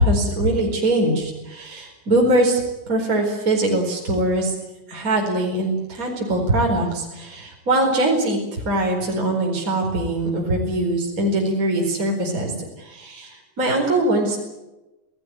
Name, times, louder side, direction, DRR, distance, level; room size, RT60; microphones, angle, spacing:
voice 1, 0.0-2.6 2.9-4.5 4.9-14.4, right 1 dB, 25° right, 0 dB, 4.9 m, -22 dB
27.5 x 17.5 x 9.4 m, 1.0 s
omnidirectional pair, 3.5 m